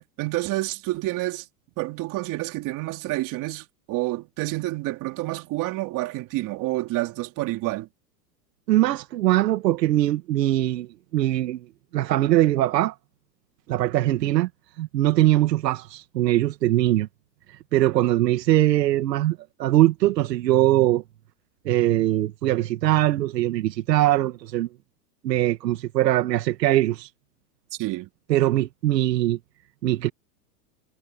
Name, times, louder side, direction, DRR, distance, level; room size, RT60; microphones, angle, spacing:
voice 1, 0.0-1.4 1.8-7.9 27.8-28.1, right 19 dB, 40° right, 3.3 m, -29 dB
voice 2, 8.7-10.9 11.1-11.7 11.9-13.0 13.7-14.5 14.8-17.1 17.7-21.0 21.7-24.7 25.2-27.1 28.3-29.4 29.8-30.1, right 15 dB, 80° right, 2.2 m, -21 dB
supercardioid pair, 140°, 50 cm